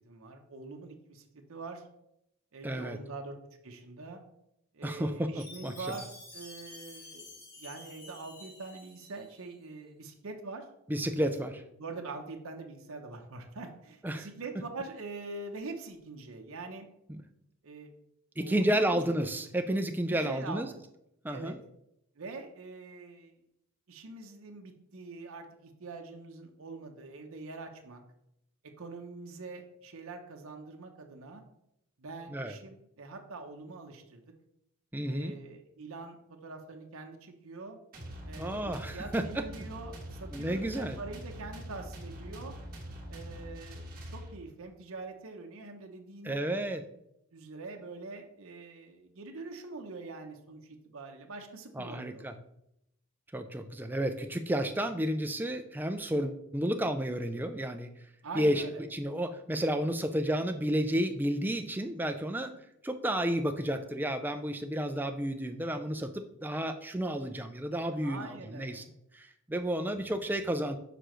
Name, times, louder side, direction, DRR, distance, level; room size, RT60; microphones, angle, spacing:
voice 1, 0.1-1.8 2.5-3.3 3.6-4.2 4.7-10.6 11.4-16.9 17.6-17.9 18.4-19.0 20.1-20.7 21.3-21.5 22.2-23.4 23.9-28.0 28.8-31.4 32.0-34.2 35.1-37.8 38.3-42.6 43.1-46.4 47.3-52.3 58.2-58.8 68.0-68.8, right 3 dB, 70° right, 2 dB, 0.8 m, -44 dB
voice 2, 2.6-3.0 4.8-5.9 10.9-11.6 14.0-14.3 17.1-17.2 18.4-20.7 21.2-21.6 32.3-32.5 34.9-35.3 38.4-39.4 40.3-41.0 46.2-46.8 51.7-52.3 53.3-57.9 58.4-58.6 58.9-62.6 62.8-68.8 69.1-70.8, right 1 dB, 10° right, 6 dB, 0.3 m, -31 dB
Chime, 5.4-9.5, left 2 dB, 45° left, 1.6 m, -50 dB
sound 1, 37.9-44.6, equal, 40° right, 1.6 m, -44 dB
6.8 x 5.0 x 3.1 m, 0.80 s
head